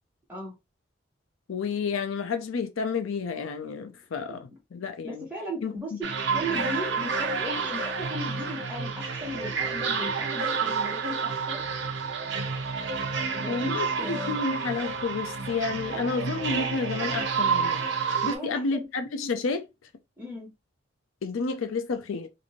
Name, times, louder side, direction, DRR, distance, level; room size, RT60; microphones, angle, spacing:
voice 1, 1.5-5.3 5.6-5.7 13.5-17.8 18.2-19.7 21.2-22.3, left 4 dB, 80° left, 0.4 m, -30 dB
voice 2, 5.0-11.6 13.3-14.4 18.2-18.9 20.2-20.5, equal, 10° right, 1.2 m, -37 dB
sound 1, 6.0-18.4, right 5 dB, 60° right, 0.6 m, -29 dB
2.6 x 2.6 x 2.9 m
head